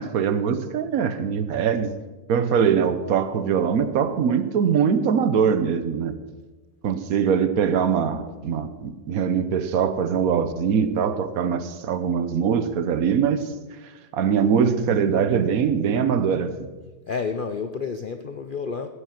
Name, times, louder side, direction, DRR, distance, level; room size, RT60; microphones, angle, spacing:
voice 1, 0.0-1.9 2.3-6.2 6.8-13.5 13.8-16.7, right 7 dB, 60° right, 11 dB, 1.2 m, -22 dB
voice 2, 17.1-18.9, left 5 dB, 85° left, 7 dB, 0.4 m, -30 dB
16.0 x 8.3 x 5.9 m, 1.2 s
omnidirectional pair, 1.9 m